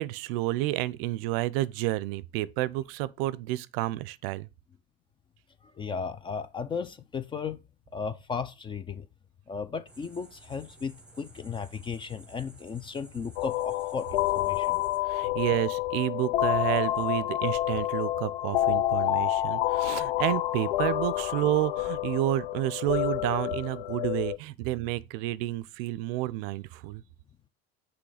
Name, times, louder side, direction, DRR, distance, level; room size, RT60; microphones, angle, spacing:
voice 1, 0.0-4.5 15.1-27.0, right 16 dB, 75° right, 0.5 m, -30 dB
voice 2, 5.8-7.6 7.9-9.1 9.5-14.8, left 5 dB, 20° left, 0.3 m, -35 dB
sound 1, 9.9-15.0, right 2 dB, 5° right, 1.1 m, -54 dB
sound 2, 13.4-24.4, left 14 dB, 85° left, 0.5 m, -28 dB
6.2 x 3.2 x 4.8 m
supercardioid pair, 135°, 29 cm